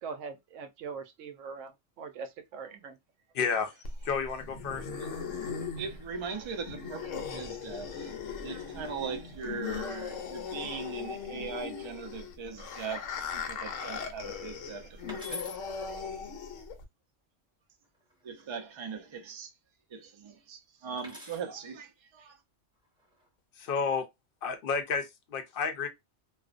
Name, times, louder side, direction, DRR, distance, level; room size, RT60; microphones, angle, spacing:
voice 1, 0.0-3.0, right 5 dB, 80° right, 0.9 m, -42 dB
voice 2, 3.3-3.7 4.0-4.9 23.6-24.1 24.4-25.9, left 5 dB, 60° left, 0.6 m, -31 dB
sound 1, 3.8-16.8, left 6 dB, 80° left, 1.0 m, -38 dB
voice 3, 5.8-15.6 18.2-19.5 19.9-22.4, right 5 dB, 50° right, 0.3 m, -40 dB
sound 2, 15.1-15.6 17.8-18.4 21.0-21.5 22.8-23.3, left 3 dB, 5° right, 0.7 m, -44 dB
2.4 x 2.1 x 2.4 m
omnidirectional pair, 1.3 m